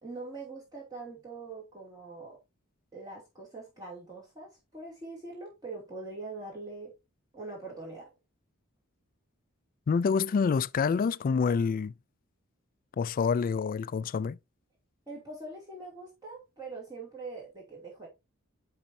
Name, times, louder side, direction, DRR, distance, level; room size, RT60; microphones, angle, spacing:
voice 1, 0.0-2.4 2.9-6.9 7.3-8.1 15.1-18.1, right 3 dB, 20° right, 2.7 m, -43 dB
voice 2, 9.9-11.9 13.0-14.4, left 5 dB, 40° left, 0.3 m, -27 dB
10.5 x 4.2 x 2.7 m
head